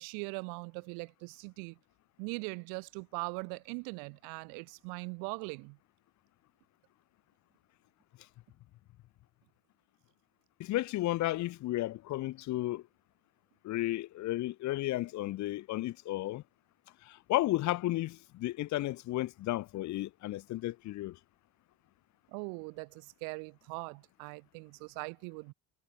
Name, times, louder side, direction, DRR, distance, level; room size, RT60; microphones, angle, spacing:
voice 1, 0.0-1.8 2.2-5.8 22.3-25.5, right 39 dB, 80° right, 3.7 m, -41 dB
voice 2, 10.6-12.8 13.6-16.4 17.0-21.2, left 16 dB, 55° left, 1.5 m, -33 dB
supercardioid pair, 115°, 34 cm